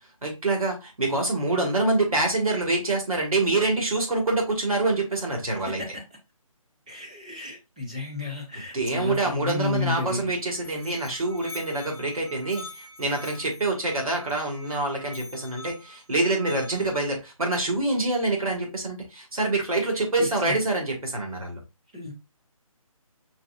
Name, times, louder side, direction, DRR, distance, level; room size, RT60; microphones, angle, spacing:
voice 1, 0.2-5.8 8.7-21.6, right 2 dB, 75° right, 0 dB, 2.0 m, -26 dB
voice 2, 6.9-10.3 20.2-20.6 21.9-22.1, left 3 dB, 15° right, -2 dB, 0.8 m, -32 dB
Musical instrument, 10.3-17.0, left 2 dB, 20° left, 0.6 m, -45 dB
5.6 x 3.3 x 2.5 m, 0.26 s
hypercardioid pair, 175°, 19 cm